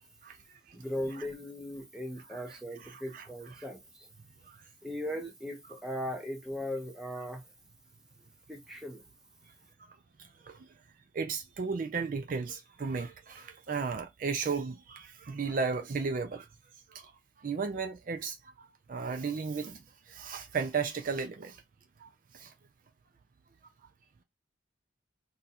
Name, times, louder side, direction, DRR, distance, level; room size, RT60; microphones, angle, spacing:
voice 1, 0.7-4.1 4.8-7.4 8.5-9.0, equal, 5° right, 0.6 m, -38 dB
voice 2, 2.3-3.3 3.6-3.7 4.5-4.6 10.2-10.7 11.1-16.5 16.9-17.1 17.4-21.6 22.0-22.5, right 5 dB, 45° right, 0.4 m, -35 dB
2.6 x 2.3 x 4.1 m
head